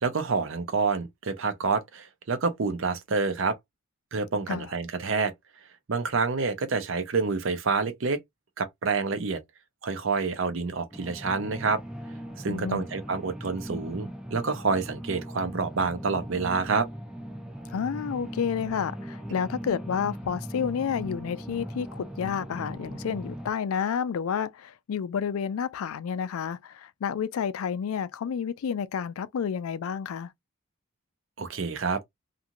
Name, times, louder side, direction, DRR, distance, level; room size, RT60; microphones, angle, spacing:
voice 1, 0.0-3.6 4.1-5.3 5.9-8.2 8.6-9.4 9.8-11.8 12.4-16.9 31.4-32.0, right 4 dB, 65° right, 0.6 m, -28 dB
sound 1, 10.9-23.5, equal, 5° right, 0.3 m, -39 dB
voice 2, 12.5-12.9 17.7-30.3, left 7 dB, 75° left, 0.4 m, -30 dB
2.6 x 2.4 x 2.8 m
head